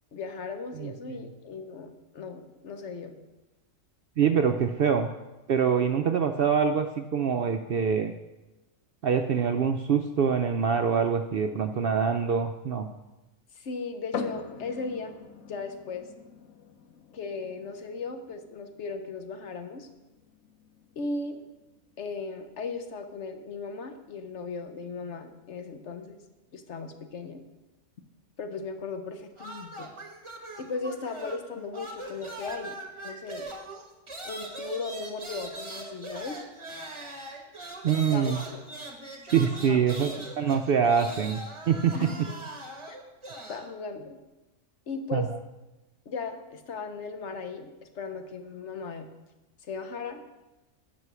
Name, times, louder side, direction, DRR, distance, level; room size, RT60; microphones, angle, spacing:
voice 1, 0.1-3.2 13.5-15.1 15.5-16.1 17.1-19.9 21.0-21.4 22.0-26.2 26.5-27.4 28.4-29.9 30.6-32.8 33.0-33.5 34.2-36.4 38.1-38.6 39.7-40.0 41.9-42.4 42.9-43.0 43.5-44.2 44.9-45.3 46.1-49.1 49.6-50.2, left 4 dB, 60° left, 7 dB, 1.2 m, -37 dB
voice 2, 4.2-5.1 5.5-8.1 9.0-12.9 37.8-38.4 39.2-42.1 45.1-45.3, right 7 dB, 60° right, 6 dB, 0.6 m, -25 dB
sound 1, 14.1-27.6, left 5 dB, 90° left, 1.1 m, -45 dB
sound 2, 29.4-31.5 31.7-43.7, right 1 dB, 25° right, 1.2 m, -41 dB
9.6 x 6.3 x 6.1 m, 1.0 s
omnidirectional pair, 1.4 m